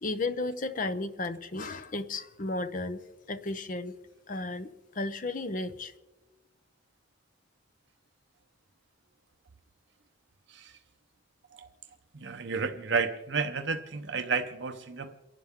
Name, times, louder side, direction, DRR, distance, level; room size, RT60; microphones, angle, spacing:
voice 1, 0.0-3.0 3.3-3.9 4.3-5.9, left 2 dB, 40° left, 10 dB, 0.8 m, -34 dB
voice 2, 12.2-15.1, right 5 dB, 65° right, 6 dB, 0.7 m, -31 dB
28.5 x 11.5 x 3.6 m, 1.2 s
head